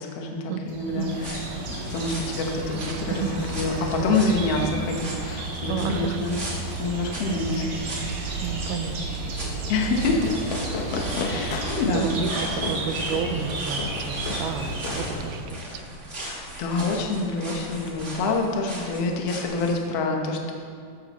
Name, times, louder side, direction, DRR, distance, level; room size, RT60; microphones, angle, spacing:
voice 1, 0.0-1.4 1.9-6.4 6.8-7.6 9.7-10.3 11.3-12.2 16.2-20.5, left 3 dB, 85° left, 1 dB, 1.3 m, -26 dB
sound 1, 0.7-15.5, right 2 dB, 55° right, 2.4 m, -32 dB
sound 2, 1.1-19.8, right 1 dB, 35° right, 1.1 m, -39 dB
voice 2, 2.8-3.3 5.7-6.3 7.5-7.6 8.0-9.5 9.9-10.2 10.4-10.5 11.3-11.6 11.9-15.6, right 6 dB, 80° right, 8 dB, 2.5 m, -32 dB
Fireworks, 10.2-15.7, left 4 dB, 70° left, 2.2 m, -34 dB
14.5 x 12.5 x 3.1 m, 2.3 s
omnidirectional pair, 4.6 m